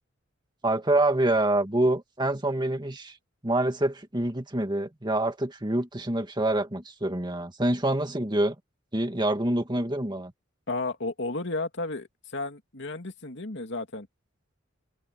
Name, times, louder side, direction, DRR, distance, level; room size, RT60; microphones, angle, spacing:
voice 1, 0.6-3.2 3.4-8.6 8.9-10.3, right 1 dB, 20° right, 2.2 m, -26 dB
voice 2, 10.7-14.1, left 2 dB, 65° left, 2.6 m, -33 dB
open air
head